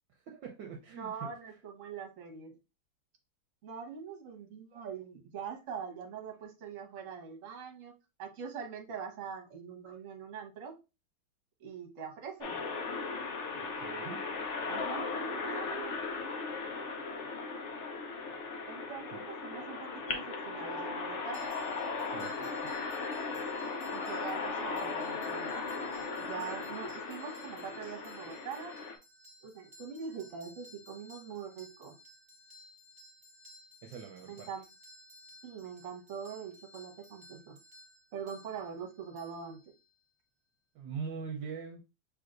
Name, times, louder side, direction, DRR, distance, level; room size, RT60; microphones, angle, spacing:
voice 1, 0.1-1.3 13.5-14.4 19.1-19.2 22.1-22.8 33.8-34.5 40.7-41.8, right 6 dB, 70° right, 1.2 m, -43 dB
voice 2, 1.0-2.5 3.6-7.9 8.2-10.8 11.6-12.6 14.7-16.0 18.7-21.4 23.9-25.5 26.2-28.7 29.4-32.0 34.2-34.6 35.4-37.6 38.1-39.6, right 6 dB, 45° right, 1.2 m, -43 dB
sound 1, 12.4-29.0, left 4 dB, 85° left, 0.6 m, -37 dB
sound 2, 21.3-40.1, left 1 dB, 15° right, 1.4 m, -58 dB
5.9 x 3.3 x 2.5 m
omnidirectional pair, 2.3 m